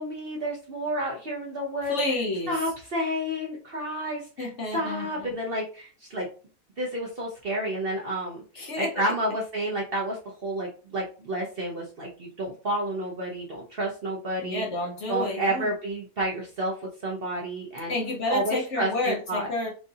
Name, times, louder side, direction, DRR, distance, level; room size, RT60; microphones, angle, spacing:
voice 1, 0.0-1.9 2.5-6.3 6.8-14.6 15.1-17.9 18.3-19.5, right 1 dB, 45° right, 0.8 m, -30 dB
voice 2, 1.9-2.6 4.4-5.3 8.5-8.9 14.4-15.7 17.9-19.7, left 2 dB, 55° left, 1.0 m, -30 dB
4.7 x 2.5 x 2.7 m
omnidirectional pair, 1.7 m